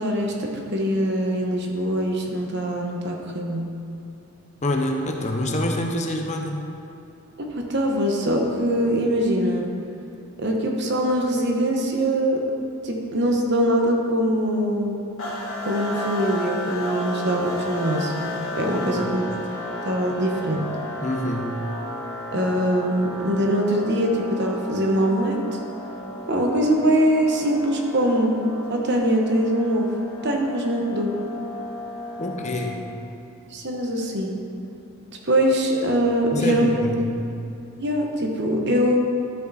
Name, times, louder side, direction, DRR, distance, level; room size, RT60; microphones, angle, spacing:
voice 1, 0.0-3.6 7.4-9.7 10.4-12.4 12.8-15.0 15.6-18.2 18.6-19.3 19.8-20.7 22.3-25.4 26.3-28.3 28.7-29.9 30.2-31.1 33.5-34.3 35.2-36.8 37.8-39.0, equal, 50° right, 1 dB, 1.2 m, -22 dB
voice 2, 4.6-6.7 18.9-19.1 21.0-21.6 32.2-32.9 36.3-37.2, left 1 dB, 30° left, 2 dB, 0.8 m, -26 dB
sound 1, 15.2-33.0, left 1 dB, 65° left, 1.8 m, -34 dB
12.0 x 6.6 x 4.1 m, 2.8 s
head